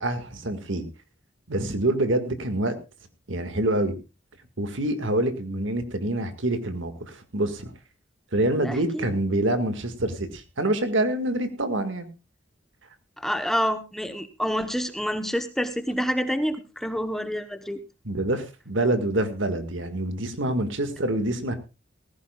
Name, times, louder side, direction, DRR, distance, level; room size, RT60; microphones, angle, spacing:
voice 1, 0.0-0.9 1.5-2.7 3.3-3.9 4.6-7.7 8.3-12.1 18.0-21.5, right 1 dB, 80° right, 8 dB, 1.8 m, -26 dB
voice 2, 8.6-9.0 13.2-17.8, equal, ahead, 9 dB, 0.9 m, -28 dB
18.5 x 15.0 x 2.3 m, 0.28 s
head